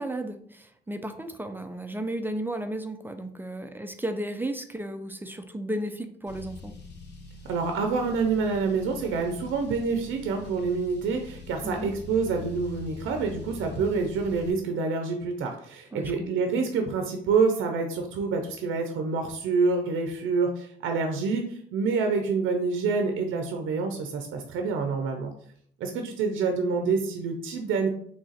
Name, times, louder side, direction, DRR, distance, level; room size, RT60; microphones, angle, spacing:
voice 1, 0.0-6.7 11.6-11.9 15.9-16.3, right 1 dB, 10° right, 7 dB, 0.4 m, -34 dB
Car, 6.3-14.5, left 3 dB, 60° left, 0.9 m, -44 dB
voice 2, 7.4-25.3 25.8-27.9, right 4 dB, 85° right, 4 dB, 0.5 m, -27 dB
3.2 x 2.4 x 3.9 m, 0.63 s
cardioid pair, 90°, 20 cm